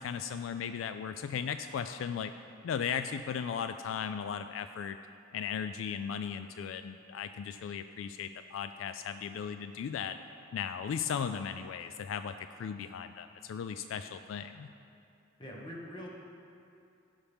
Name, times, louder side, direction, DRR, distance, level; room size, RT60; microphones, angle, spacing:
voice 1, 0.0-2.3 2.6-5.0 5.3-10.2 10.5-12.3 12.6-14.7, left 7 dB, 75° left, 9 dB, 0.3 m, -36 dB
voice 2, 15.4-16.1, equal, 25° left, -3 dB, 1.3 m, -43 dB
15.5 x 5.7 x 3.5 m, 2.5 s
head